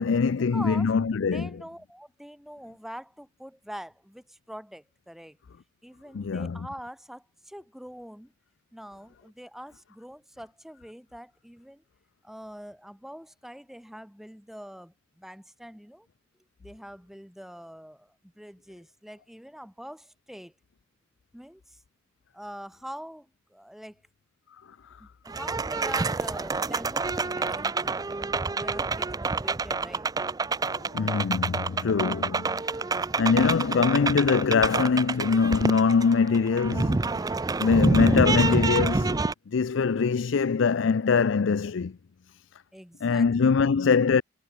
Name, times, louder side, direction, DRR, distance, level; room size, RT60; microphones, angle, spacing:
voice 1, 0.0-1.5 6.1-6.6 30.9-32.6 33.2-39.2 39.5-42.0 43.0-44.2, left 5 dB, 65° left, 0.5 m, -23 dB
voice 2, 0.5-0.9 1.2-5.4 5.8-8.3 8.7-11.8 12.2-16.1 16.6-20.5 21.3-21.8 22.3-24.0 25.0-30.1 32.8-33.3 42.7-43.5, equal, ahead, 1.6 m, -44 dB
sound 1, 25.3-39.3, right 3 dB, 20° right, 0.4 m, -28 dB
head